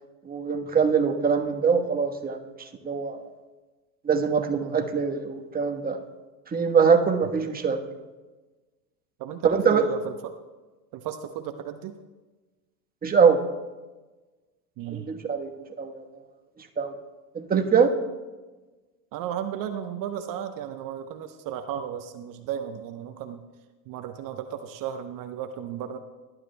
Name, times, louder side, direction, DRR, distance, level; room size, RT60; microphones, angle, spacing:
voice 1, 0.2-3.3 4.0-6.0 6.5-7.8 9.4-9.9 13.0-13.4 14.9-15.5 15.8-16.0 16.8-16.9 17.3-17.9, right 6 dB, 20° right, 4 dB, 1.2 m, -23 dB
voice 2, 9.2-10.4 10.9-12.0 14.8-15.1 19.1-23.4 23.9-26.0, right 9 dB, 40° right, 8 dB, 0.8 m, -34 dB
19.0 x 11.5 x 2.2 m, 1.2 s
hypercardioid pair, 100°, 50 cm